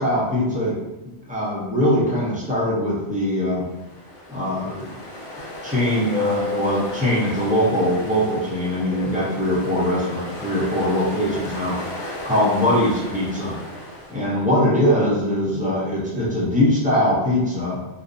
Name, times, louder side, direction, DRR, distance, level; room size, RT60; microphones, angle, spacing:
voice 1, 0.0-3.7 4.3-5.0 5.6-11.8 12.2-13.6 14.1-17.8, left 1 dB, 10° right, -8 dB, 0.5 m, -22 dB
Ocean, 3.5-14.6, left 2 dB, 50° left, 0.4 m, -33 dB
2.6 x 2.0 x 2.6 m, 1.0 s
omnidirectional pair, 1.1 m